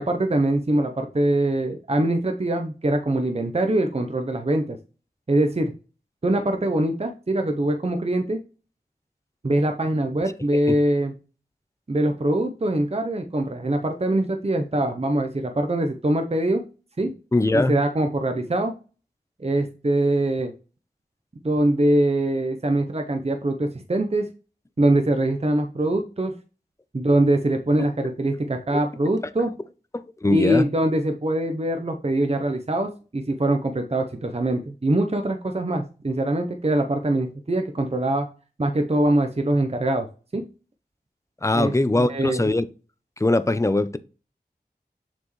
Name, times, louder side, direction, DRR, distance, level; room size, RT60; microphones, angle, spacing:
voice 1, 0.0-4.8 5.3-5.7 6.2-8.4 9.4-11.1 11.9-16.6 17.0-17.1 17.5-18.7 19.4-20.5 21.4-24.3 24.8-26.3 26.9-29.5 30.3-38.3 38.6-40.1 40.3-40.4 41.5-42.4, right 1 dB, 40° right, 0.8 m, -23 dB
voice 2, 17.3-17.7 28.7-28.8 29.9-30.7 41.4-42.7 43.2-44.0, left 2 dB, 15° left, 0.6 m, -21 dB
7.0 x 4.4 x 3.2 m
wide cardioid pair, 40°, 17 cm